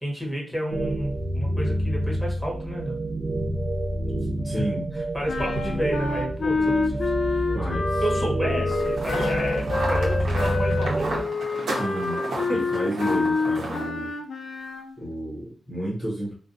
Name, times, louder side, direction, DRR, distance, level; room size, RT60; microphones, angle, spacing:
voice 1, 0.0-3.0 4.4-4.6 4.9-7.4 8.0-11.3 12.3-12.6, right 1 dB, 5° right, -3 dB, 1.0 m, -31 dB
sound 1, 0.7-11.2, right 1 dB, 50° right, 0.3 m, -28 dB
voice 2, 4.4-4.9 7.5-8.0 11.7-12.2 12.5-14.1 15.0-16.3, equal, 20° left, -6 dB, 0.7 m, -31 dB
sound 2, 5.3-14.9, left 4 dB, 60° left, 0.4 m, -27 dB
sound 3, 8.7-13.9, right 2 dB, 80° right, 0.8 m, -32 dB
2.5 x 2.0 x 2.6 m, 0.40 s
wide cardioid pair, 105°, 0 cm